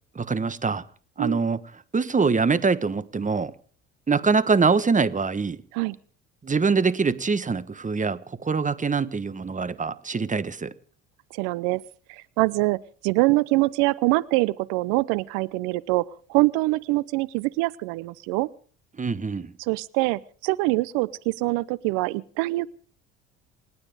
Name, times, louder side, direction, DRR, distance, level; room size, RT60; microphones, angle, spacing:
voice 1, 0.1-0.8 1.2-1.6 1.9-3.5 4.1-5.6 6.4-10.7 19.0-19.5, right 4 dB, 20° right, 1.3 m, -24 dB
voice 2, 11.3-11.8 12.1-16.0 16.3-18.5 19.6-22.8, right 22 dB, 70° right, 0.8 m, -24 dB
28.5 x 9.8 x 5.0 m
hypercardioid pair, 65°, 36 cm